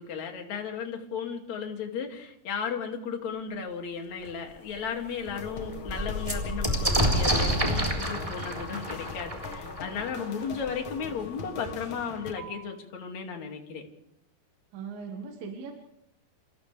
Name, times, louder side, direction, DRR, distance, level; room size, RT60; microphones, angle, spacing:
voice 1, 0.0-13.8, left 6 dB, 45° left, 2 dB, 3.5 m, -35 dB
sound 1, 4.2-4.3 4.8-4.9 5.1-10.7 11.7-11.8 12.0-12.6, equal, 10° right, 3.3 m, -29 dB
sound 2, 5.3-12.3, left 5 dB, 70° left, 1.1 m, -41 dB
voice 2, 14.7-15.7, right 5 dB, 65° right, 1 dB, 3.4 m, -39 dB
29.0 x 27.5 x 3.5 m, 0.77 s
omnidirectional pair, 4.8 m